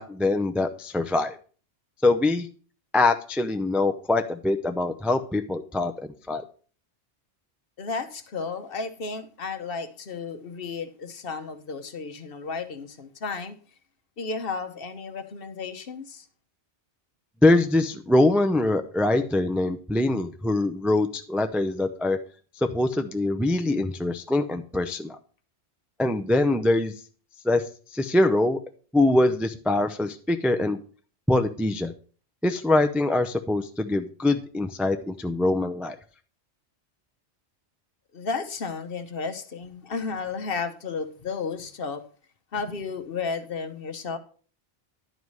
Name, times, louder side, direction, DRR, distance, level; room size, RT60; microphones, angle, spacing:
voice 1, 0.0-1.4 2.0-2.5 2.9-6.4 17.4-22.2 22.6-25.2 26.0-26.9 27.4-27.6 27.9-28.6 28.9-30.8 31.3-31.9 32.4-36.0, left 2 dB, ahead, 0.3 m, -23 dB
voice 2, 7.8-13.6 14.2-16.3 38.1-42.1 42.5-44.2, left 4 dB, 55° left, 1.1 m, -33 dB
11.0 x 4.8 x 5.4 m
omnidirectional pair, 1.2 m